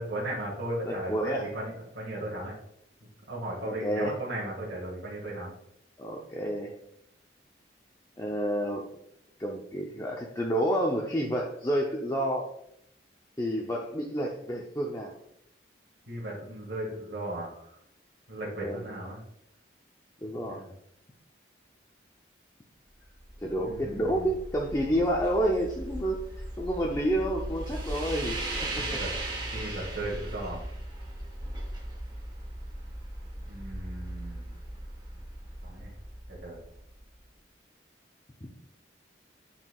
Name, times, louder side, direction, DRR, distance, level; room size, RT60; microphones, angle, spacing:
voice 1, 0.0-2.6 3.3-5.5 16.1-17.7 18.3-19.2 20.5-20.7 23.6-24.3 28.8-29.1 29.5-30.6 33.4-34.5 35.6-35.9 36.4-36.6, right 1 dB, 75° right, -5 dB, 1.7 m, -36 dB
voice 2, 0.9-1.5 3.6-4.1 6.0-6.7 8.2-8.9 9.4-12.5 13.4-15.1 18.6-18.9 20.2-20.6 23.4-29.0 29.5-29.8 38.4-38.5, equal, 20° left, -1 dB, 0.5 m, -30 dB
sound 1, 23.0-37.2, right 1 dB, 20° right, 1.1 m, -38 dB
9.0 x 4.5 x 2.3 m, 0.74 s
head